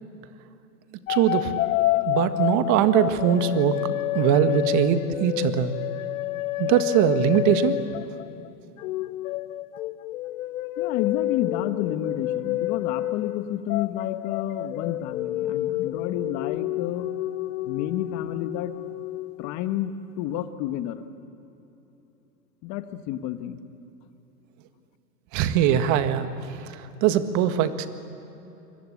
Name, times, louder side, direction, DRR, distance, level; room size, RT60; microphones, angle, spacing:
sound 1, 1.1-8.5 8.8-19.9, left 15 dB, 60° left, 0.8 m, -29 dB
voice 1, 1.1-1.5 2.0-5.7 6.6-7.8 25.3-27.9, right 9 dB, 40° right, 9 dB, 1.7 m, -22 dB
voice 2, 10.8-17.1 17.6-18.7 19.4-21.1 22.6-23.6, left 11 dB, 35° left, 10 dB, 1.5 m, -30 dB
26.5 x 23.0 x 8.6 m, 3.0 s
hypercardioid pair, 125°, 47 cm